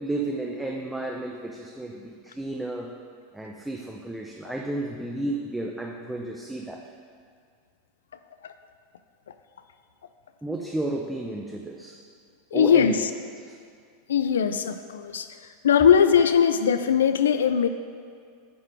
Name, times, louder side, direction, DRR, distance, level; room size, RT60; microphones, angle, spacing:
voice 1, 0.0-2.9 3.3-6.8 10.4-12.0 12.5-13.0 13.3-13.6, right 2 dB, 5° right, 0 dB, 0.6 m, -32 dB
voice 2, 12.5-13.1 14.1-15.3 15.6-17.7, left 7 dB, 85° left, 9 dB, 0.3 m, -20 dB
9.8 x 3.7 x 4.8 m, 2.2 s
hypercardioid pair, 100°, 0 cm